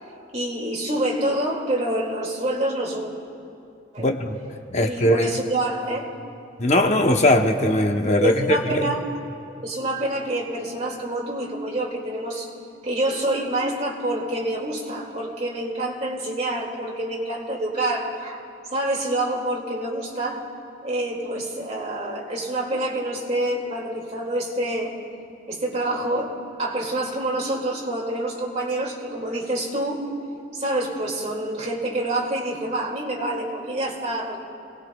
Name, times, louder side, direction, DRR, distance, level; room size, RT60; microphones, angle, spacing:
voice 1, 0.3-3.1 3.9-4.1 4.8-6.1 8.2-9.1 9.6-12.5 12.8-18.4 18.7-20.4 20.8-24.9 25.5-30.0 30.5-34.4, right 1 dB, 40° right, -2 dB, 2.2 m, -27 dB
voice 2, 4.0-4.4 4.7-5.3 6.6-8.9, left 1 dB, 40° left, 4 dB, 0.8 m, -20 dB
29.5 x 19.0 x 2.3 m, 2.6 s
head